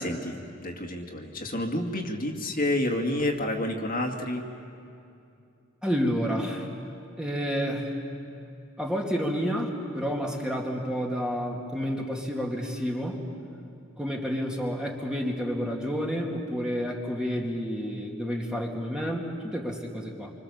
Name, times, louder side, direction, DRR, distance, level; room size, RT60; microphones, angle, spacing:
voice 1, 0.0-4.5, left 1 dB, 45° left, 1 dB, 2.3 m, -29 dB
voice 2, 5.8-6.7 7.2-8.0 8.8-13.2 14.0-20.3, equal, 5° right, -1 dB, 2.4 m, -30 dB
27.0 x 25.5 x 7.2 m, 2.5 s
head